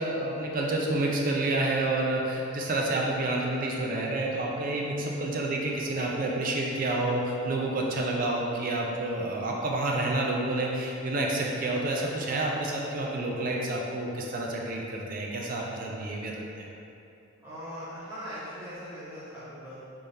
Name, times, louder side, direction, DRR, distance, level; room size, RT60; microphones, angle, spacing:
voice 1, 0.0-16.7, right 2 dB, 40° right, -1 dB, 0.4 m, -29 dB
voice 2, 17.4-19.8, equal, 10° right, -13 dB, 1.1 m, -40 dB
3.4 x 3.3 x 2.7 m, 2.8 s
head